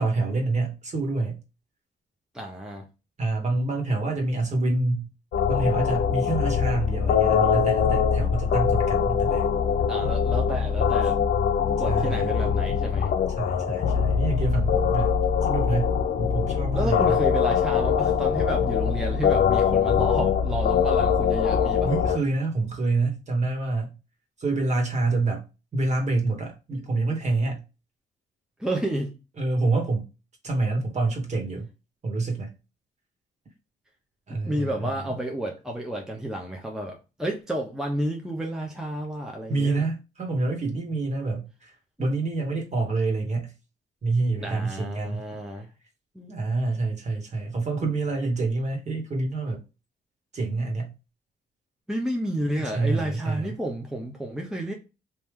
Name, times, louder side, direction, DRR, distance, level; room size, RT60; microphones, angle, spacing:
voice 1, 0.0-1.4 3.2-5.1 5.5-9.5 11.9-12.3 13.4-15.2 15.4-17.2 21.8-23.9 24.4-25.4 25.7-27.6 29.4-30.1 30.4-31.7 32.0-32.5 34.3-35.1 39.5-41.7 42.0-43.5 44.0-45.2 46.3-49.6 50.3-50.9 52.7-53.5, right 3 dB, 35° right, 1.7 m, -27 dB
voice 2, 2.3-2.9 9.9-11.2 11.8-13.1 16.7-21.9 28.6-29.2 34.5-39.9 44.4-45.7 46.1-46.4 51.9-54.7, right 1 dB, 5° right, 0.8 m, -31 dB
sound 1, 5.3-22.2, left 7 dB, 55° left, 0.5 m, -23 dB
3.3 x 2.7 x 3.5 m
cardioid pair, 90°, 20 cm